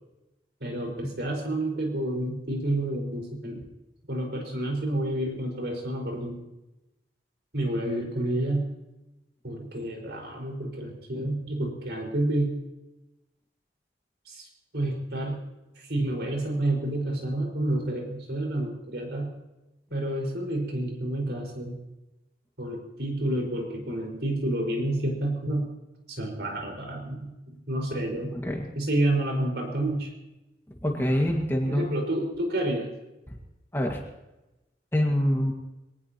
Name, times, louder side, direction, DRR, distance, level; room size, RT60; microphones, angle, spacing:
voice 1, 0.6-3.6 4.1-6.4 7.5-8.7 9.4-12.6 14.2-14.5 14.7-15.4 15.8-19.3 19.9-21.7 22.6-25.7 26.1-27.3 27.7-28.3 28.7-30.1 31.6-32.9, right 1 dB, 80° right, 1 dB, 5.1 m, -29 dB
voice 2, 28.3-28.6 30.8-31.9 33.3-33.4 33.7-34.0 34.9-35.5, equal, 15° left, 0 dB, 1.9 m, -25 dB
22.5 x 19.0 x 3.0 m, 0.99 s
head